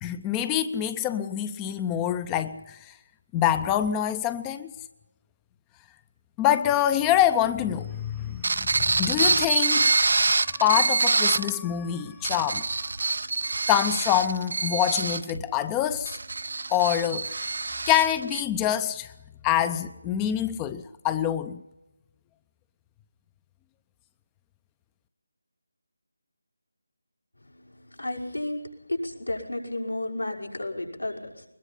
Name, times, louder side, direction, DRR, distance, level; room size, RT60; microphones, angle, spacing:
voice 1, 0.0-3.0 3.3-4.7 6.4-9.9 10.4-12.9 13.7-16.2 16.7-17.5 17.9-19.1 19.4-21.6, left 11 dB, 15° left, 12 dB, 0.6 m, -26 dB
sound 1, 8.4-11.5 12.1-18.4, right 3 dB, 60° right, 0.6 m, -25 dB
voice 2, 27.5-28.6 28.9-31.5, left 1 dB, 90° left, -1 dB, 5.9 m, -32 dB
22.0 x 21.0 x 5.6 m, 0.97 s
figure-of-eight pair, 160°, 0 cm